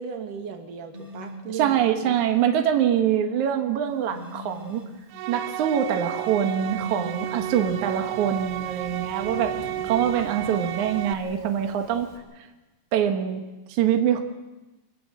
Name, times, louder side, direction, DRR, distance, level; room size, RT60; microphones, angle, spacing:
voice 1, 0.0-2.2, right 6 dB, 55° right, 5 dB, 3.0 m, -36 dB
sound 1, 0.9-1.5 4.0-5.0 6.6-7.7, right 1 dB, 15° right, 1.9 m, -39 dB
voice 2, 1.5-4.8 5.3-9.5 9.8-12.1 12.4-12.5 12.9-13.4 13.7-14.2, right 9 dB, 70° right, 5 dB, 1.8 m, -24 dB
Thunderstorm / Rain, 4.5-12.2, left 2 dB, 50° left, 4.6 m, -46 dB
sound 2, 5.1-11.1, right 14 dB, 90° right, 3.4 m, -33 dB
25.0 x 19.0 x 7.6 m, 1.1 s
omnidirectional pair, 5.5 m